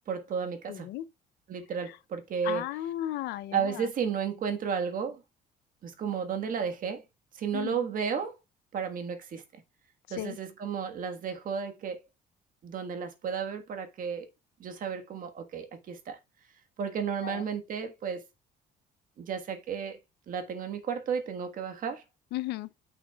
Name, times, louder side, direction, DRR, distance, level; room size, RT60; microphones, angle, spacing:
voice 1, 0.1-0.9 1.5-2.6 3.5-5.2 5.8-7.0 7.3-8.3 8.7-9.6 10.1-12.0 12.6-14.3 14.6-16.2 16.8-18.2 19.2-20.0 20.3-22.0, right 6 dB, 55° right, 1.5 m, -33 dB
voice 2, 0.7-1.0 1.8-2.0 2.4-3.9 7.5-7.9 10.1-10.4 17.2-17.4 22.3-22.7, left 14 dB, 85° left, 0.6 m, -35 dB
9.3 x 5.8 x 2.3 m
cardioid pair, 110°, 17 cm